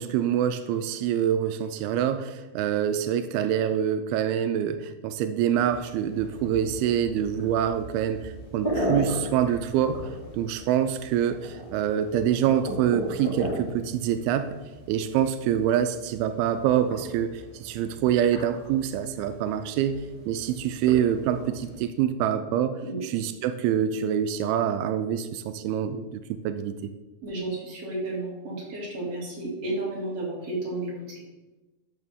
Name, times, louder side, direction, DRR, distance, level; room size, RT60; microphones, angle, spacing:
voice 1, 0.0-10.0 10.4-14.5 14.9-26.9, right 9 dB, 90° right, 9 dB, 2.4 m, -26 dB
sound 1, 5.5-21.8, equal, 20° left, 1.7 m, -37 dB
voice 2, 27.2-31.2, right 2 dB, 45° right, -5 dB, 3.3 m, -32 dB
12.5 x 6.5 x 3.6 m, 1.1 s
omnidirectional pair, 4.3 m